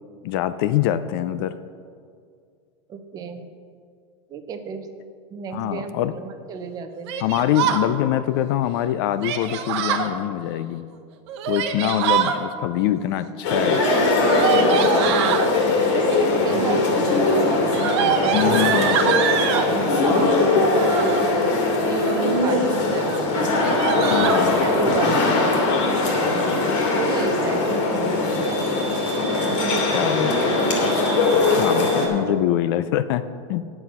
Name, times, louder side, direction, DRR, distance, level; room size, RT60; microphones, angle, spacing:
voice 1, 0.2-1.6 5.5-6.1 7.2-10.8 11.5-13.8 18.3-19.0 24.1-24.7 29.9-30.3 31.6-33.6, left 12 dB, 50° left, 13 dB, 0.4 m, -24 dB
voice 2, 2.9-3.5 4.3-4.9 5.3-7.1 14.4-15.3 15.8-17.6 18.1-23.5 24.6-25.4 26.9-28.6 29.4-30.3 32.2-32.3, right 6 dB, 25° right, 8 dB, 0.6 m, -31 dB
Yell, 7.1-7.8 9.2-10.1 11.3-12.4 13.7-15.5 16.3-16.7 17.1-19.7 20.6-21.2 21.8-22.3 22.7-22.8 23.1-23.2 23.5-24.4, right 8 dB, 60° right, 0.9 m, -25 dB
sound 1, 13.4-32.1, left 3 dB, 70° left, 2.6 m, -20 dB
9.5 x 7.8 x 5.7 m, 2.2 s
supercardioid pair, 160°, 16 cm